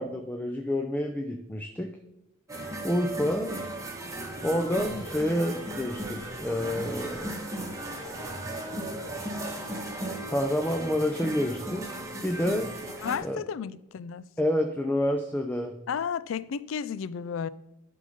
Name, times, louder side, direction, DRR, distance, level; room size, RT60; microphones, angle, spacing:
voice 1, 0.0-1.9 2.8-3.6 4.4-7.4 10.3-11.9 12.2-12.7 13.2-13.4 14.4-15.7, left 1 dB, 10° left, 0.5 m, -28 dB
sound 1, 2.5-13.2, right 1 dB, 15° right, 1.2 m, -36 dB
voice 2, 13.0-14.3 15.9-17.5, left 7 dB, 70° left, 0.4 m, -32 dB
11.0 x 3.9 x 5.1 m
head